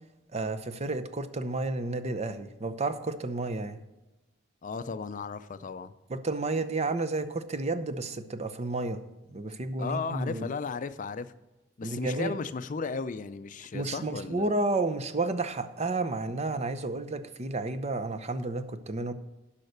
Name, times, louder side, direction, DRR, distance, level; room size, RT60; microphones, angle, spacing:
voice 1, 0.3-3.8 6.1-9.0 9.3-10.5 11.8-12.4 13.7-19.1, right 2 dB, 35° right, 11 dB, 0.7 m, -31 dB
voice 2, 4.6-5.9 9.8-11.3 11.8-14.5, left 4 dB, 45° left, 13 dB, 0.4 m, -35 dB
10.5 x 5.7 x 6.6 m, 1.0 s
head